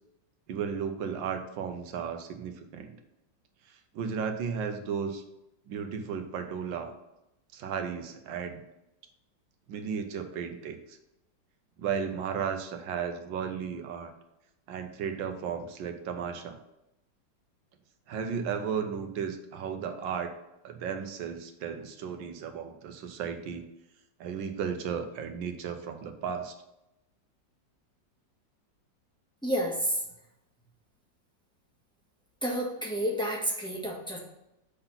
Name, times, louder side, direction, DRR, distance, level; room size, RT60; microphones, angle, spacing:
voice 1, 0.5-3.0 3.9-5.2 5.7-6.9 7.5-8.6 9.7-10.8 11.8-14.1 14.7-16.6 18.1-20.3 20.6-23.6 24.2-26.5, right 7 dB, 85° right, 7 dB, 1.5 m, -34 dB
voice 2, 29.4-30.0 32.4-34.2, equal, 5° left, -2 dB, 1.2 m, -30 dB
6.7 x 4.1 x 5.6 m, 0.89 s
omnidirectional pair, 2.0 m